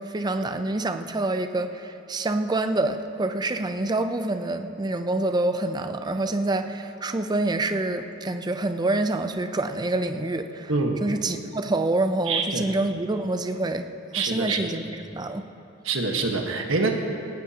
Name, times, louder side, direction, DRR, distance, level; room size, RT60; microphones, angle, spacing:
voice 1, 0.0-10.7 11.0-13.9 14.2-15.4, right 2 dB, 20° right, 8 dB, 0.5 m, -27 dB
voice 2, 10.7-11.0 12.3-12.6 14.1-14.6 15.8-16.9, right 3 dB, 70° right, 2 dB, 1.4 m, -25 dB
18.5 x 16.5 x 2.9 m, 2.8 s
head